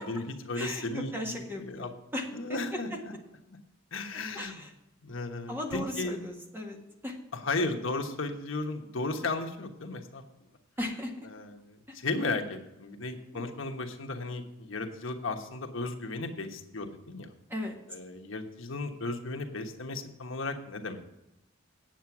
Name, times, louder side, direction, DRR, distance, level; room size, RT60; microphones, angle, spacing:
voice 1, 0.0-1.9 2.3-3.1 3.5-3.6 3.9-4.6 5.0-6.2 7.3-10.2 11.3-17.3 17.9-21.1, left 3 dB, 80° left, 4 dB, 1.3 m, -35 dB
voice 2, 0.5-3.0 4.3-4.7 5.5-7.2 10.8-11.1 13.3-13.4 17.5-17.8, left 1 dB, 10° right, 1 dB, 1.7 m, -37 dB
9.1 x 7.8 x 6.0 m, 0.92 s
head